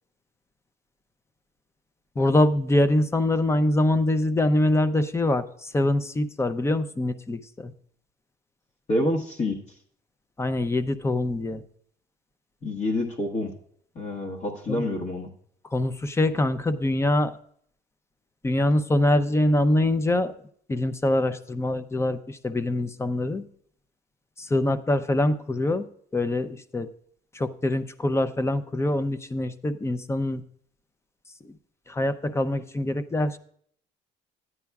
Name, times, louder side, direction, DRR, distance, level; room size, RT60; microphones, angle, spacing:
voice 1, 2.2-7.7 10.4-11.6 14.7-14.9 15.7-17.3 18.4-20.3 20.7-23.4 24.4-25.8 26.1-26.9 27.3-30.4 31.4-31.5 31.9-33.4, left 1 dB, 15° left, 12 dB, 0.5 m, -24 dB
voice 2, 8.9-9.6 12.6-13.5 13.9-15.3, left 1 dB, 45° left, -1 dB, 1.2 m, -27 dB
13.5 x 9.6 x 2.3 m, 0.62 s
cardioid pair, 110°, 17 cm